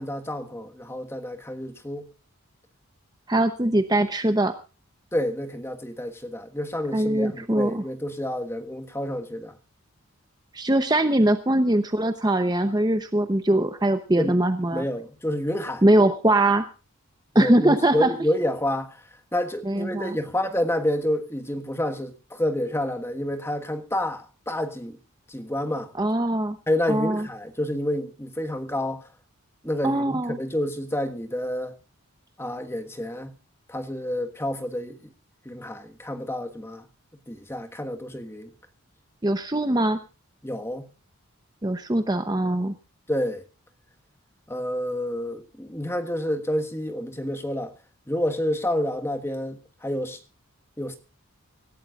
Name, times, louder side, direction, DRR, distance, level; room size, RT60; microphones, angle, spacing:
voice 1, 0.0-2.1 5.1-9.6 14.2-14.4 14.7-15.8 17.3-19.0 19.3-25.0 25.3-25.9 26.7-29.1 29.6-31.8 32.4-33.3 33.7-35.1 35.4-36.9 37.3-38.5 40.4-40.9 43.1-43.4 44.5-47.7 48.1-50.2 50.8-51.0, left 1 dB, 10° left, 1.4 m, -29 dB
voice 2, 3.3-4.6 6.9-7.8 10.5-14.8 15.8-16.7 17.3-18.1 19.6-20.2 26.0-26.6 26.9-27.3 29.8-30.4 39.2-40.0 41.6-42.7, right 1 dB, 20° right, 0.8 m, -22 dB
25.0 x 12.5 x 2.4 m
head